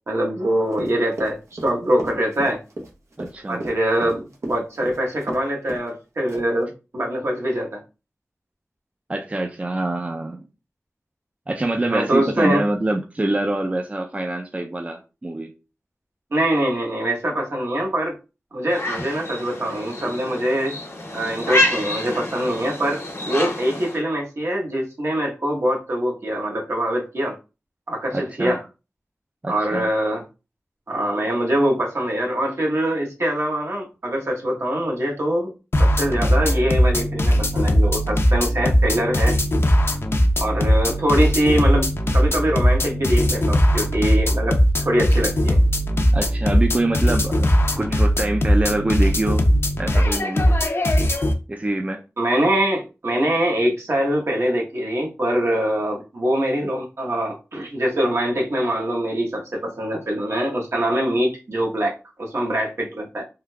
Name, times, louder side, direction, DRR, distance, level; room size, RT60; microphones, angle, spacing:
voice 1, 0.1-2.6 3.5-7.8 11.9-12.6 16.3-18.2 18.5-20.8 21.1-27.4 27.9-28.6 29.5-30.2 30.9-35.5 35.8-39.4 40.4-45.6 52.2-63.2, right 1 dB, 70° right, 1.0 m, -23 dB
Run, 0.7-5.4 5.7-5.9 6.3-6.6, right 1 dB, 90° right, 0.7 m, -34 dB
voice 2, 3.2-3.6 9.1-10.5 11.5-15.5 28.1-28.6 29.4-29.9 46.1-47.5 47.8-49.5 49.8-50.5 51.5-52.0, right 2 dB, 30° right, 0.4 m, -25 dB
sound 1, 18.7-24.0, left 1 dB, 75° left, 1.2 m, -27 dB
sound 2, 35.7-51.3, equal, 60° left, 0.5 m, -19 dB
3.7 x 2.6 x 2.2 m
wide cardioid pair, 65°, 5 cm